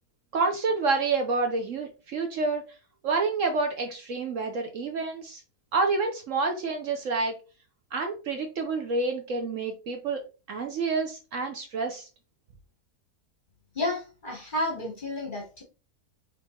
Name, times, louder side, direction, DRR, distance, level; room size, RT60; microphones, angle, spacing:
voice 1, 0.3-2.6 3.0-5.4 5.7-7.4 7.9-10.2 10.5-12.1, right 4 dB, 60° right, 5 dB, 1.0 m, -28 dB
voice 2, 13.7-15.6, left 2 dB, 35° left, 1 dB, 1.0 m, -31 dB
5.0 x 3.3 x 2.8 m, 0.32 s
omnidirectional pair, 1.7 m